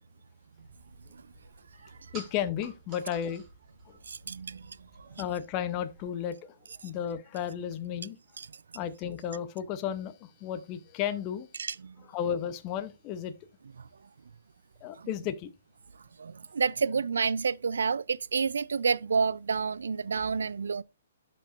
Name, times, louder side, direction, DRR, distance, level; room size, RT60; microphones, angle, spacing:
sound 1, 0.6-6.1, right 3 dB, 30° right, 3.3 m, -53 dB
voice 1, 2.1-3.4 3.9-4.0 5.1-6.6 6.8-8.2 8.7-11.5 12.1-13.3 14.8-15.5, left 9 dB, 30° left, 0.7 m, -33 dB
voice 2, 4.1-5.2 8.4-8.5 11.6-12.0 13.8-13.9 15.0-15.1 16.2-20.8, right 5 dB, 75° right, 0.4 m, -30 dB
12.0 x 5.3 x 2.5 m
hypercardioid pair, 135°, 0 cm